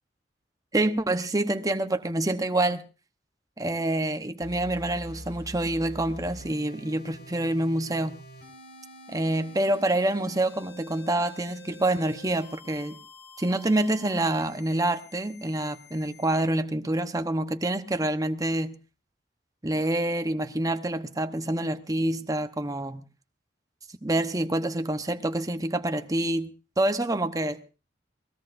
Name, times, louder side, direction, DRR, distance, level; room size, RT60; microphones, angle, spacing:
voice 1, 0.7-2.8 3.6-8.1 9.1-13.0 13.4-18.8 19.6-23.0 24.0-26.5 26.8-27.6, right 1 dB, 20° right, 0.9 m, -27 dB
sound 1, 4.4-16.4, left 1 dB, 60° left, 4.4 m, -46 dB
22.0 x 19.5 x 2.6 m
head